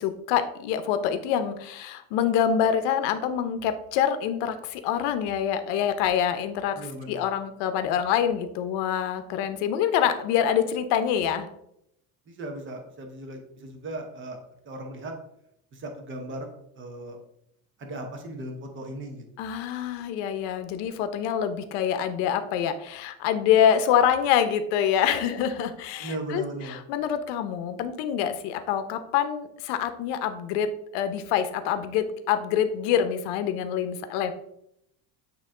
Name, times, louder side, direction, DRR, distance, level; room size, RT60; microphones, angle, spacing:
voice 1, 0.0-11.5 19.4-34.3, left 9 dB, 80° left, 9 dB, 0.8 m, -26 dB
voice 2, 6.8-7.3 12.3-14.4 14.6-15.1 15.7-16.5 16.7-17.2 17.8-19.2 26.0-26.8, right 1 dB, 30° right, 4 dB, 1.0 m, -37 dB
8.9 x 3.0 x 3.7 m, 0.76 s
cardioid pair, 165°, 41 cm